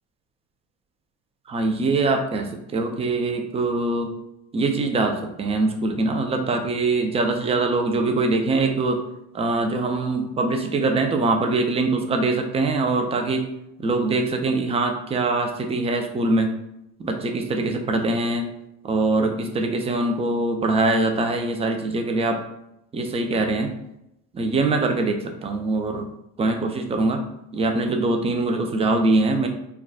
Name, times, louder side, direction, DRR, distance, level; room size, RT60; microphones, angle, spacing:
voice 1, 1.5-4.1 4.5-9.0 9.3-13.5 13.8-16.5 17.0-18.5 18.8-22.4 22.9-23.7 24.3-26.0 26.4-27.2 27.5-29.5, right 2 dB, 15° right, 4 dB, 0.3 m, -23 dB
2.3 x 2.2 x 3.4 m, 0.84 s
hypercardioid pair, 70°, 44 cm